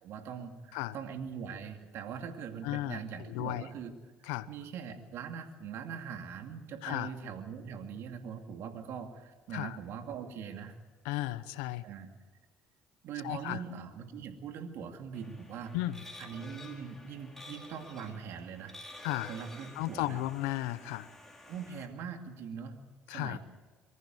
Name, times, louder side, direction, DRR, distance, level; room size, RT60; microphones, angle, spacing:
voice 1, 0.0-3.9 4.2-10.8 11.8-12.1 13.0-15.7 16.2-18.8 19.2-20.2 21.5-22.8 23.1-23.4, right 7 dB, 70° right, 6 dB, 2.4 m, -42 dB
voice 2, 2.6-3.0 3.3-3.6 4.3-4.5 6.8-7.1 9.5-9.8 11.0-11.8 13.2-13.6 15.7-16.0 19.0-19.4 19.8-21.1 23.1-23.4, left 16 dB, 85° left, 15 dB, 0.9 m, -34 dB
sound 1, 15.1-21.9, left 1 dB, 10° left, 4.5 m, -51 dB
23.5 x 14.5 x 7.6 m, 1.3 s
supercardioid pair, 70°, 5 cm